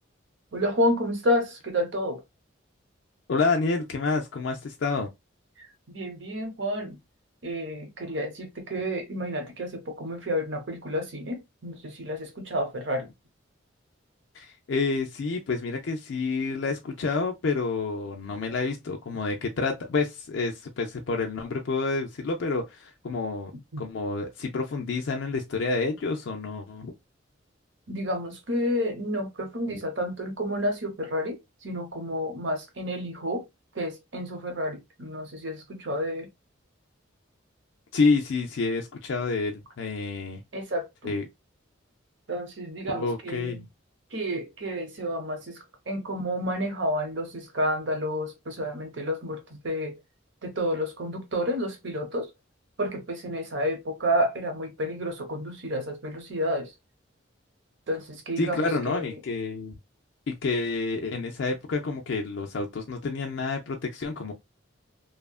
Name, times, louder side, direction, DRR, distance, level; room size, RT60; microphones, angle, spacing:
voice 1, 0.5-2.2 5.6-7.0 7.4-13.1 23.7-23.8 27.9-33.5 33.7-36.3 40.5-41.1 42.3-43.6 44.1-50.0 50.4-52.3 52.8-56.7 57.9-59.1, equal, 70° right, 0.8 m, -30 dB
voice 2, 3.3-5.1 14.3-23.5 23.8-26.9 29.7-29.8 37.9-40.4 41.0-41.2 42.9-43.7 58.4-59.8 60.3-64.3, left 3 dB, 70° left, 0.4 m, -28 dB
2.7 x 2.4 x 2.3 m
head